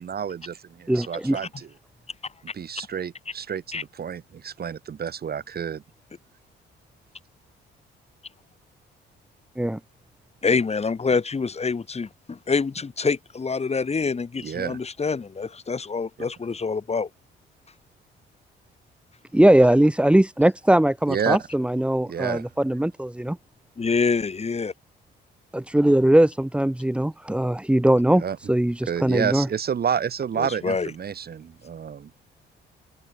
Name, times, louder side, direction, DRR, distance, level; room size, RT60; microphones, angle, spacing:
voice 1, 0.0-1.7 2.5-5.8 14.4-14.8 21.1-21.4 22.1-22.5 28.1-28.4 28.9-32.1, right 7 dB, 50° right, 4.5 m, -29 dB
voice 2, 0.9-1.4 9.6-9.8 19.3-23.4 25.5-28.2 28.5-29.5, right 1 dB, 5° right, 1.6 m, -20 dB
voice 3, 10.4-17.1 23.8-24.7 30.3-30.9, left 4 dB, 30° left, 4.4 m, -26 dB
open air
cardioid pair, 90°, 20 cm